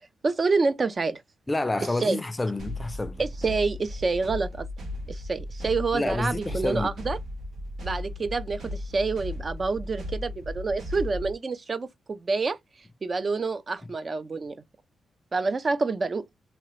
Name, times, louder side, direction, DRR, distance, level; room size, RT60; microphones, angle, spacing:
voice 1, 0.2-1.2 2.0-2.2 3.2-4.7 5.1-7.2 7.8-12.6 13.0-14.6 15.3-16.3, right 4 dB, 40° right, 0.5 m, -27 dB
voice 2, 1.5-3.2 5.9-6.9, left 2 dB, 20° left, 0.5 m, -28 dB
sound 1, 2.6-11.3, left 1 dB, 75° right, 1.8 m, -36 dB
2.9 x 2.8 x 3.0 m
cardioid pair, 90°, 0 cm